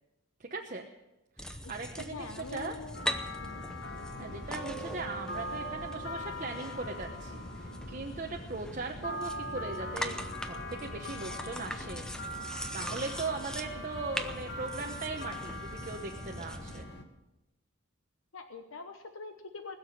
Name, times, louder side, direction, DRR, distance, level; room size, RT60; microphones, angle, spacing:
voice 1, 0.4-0.9 1.4-2.8 4.2-12.1 12.7-16.9, right 3 dB, 40° right, 2 dB, 1.0 m, -39 dB
sound 1, 1.4-16.8, equal, 5° left, 0.8 m, -42 dB
voice 2, 2.1-3.0 3.4-3.6 4.2-4.4 18.3-19.8, left 4 dB, 70° left, 7 dB, 1.1 m, -44 dB
sound 2, 2.9-17.0, equal, 50° left, 1.5 m, -41 dB
20.5 x 7.1 x 9.4 m, 0.99 s
head